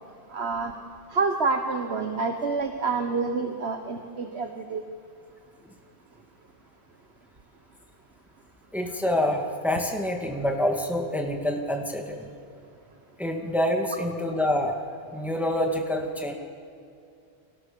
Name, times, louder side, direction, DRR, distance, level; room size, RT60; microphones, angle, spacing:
voice 1, 0.3-0.7 1.1-4.8, right 4 dB, 75° right, 5 dB, 1.7 m, -27 dB
voice 2, 8.7-12.3 13.2-14.8 15.1-16.3, left 1 dB, ahead, 2 dB, 2.4 m, -27 dB
30.0 x 25.0 x 7.1 m, 2.6 s
omnidirectional pair, 1.1 m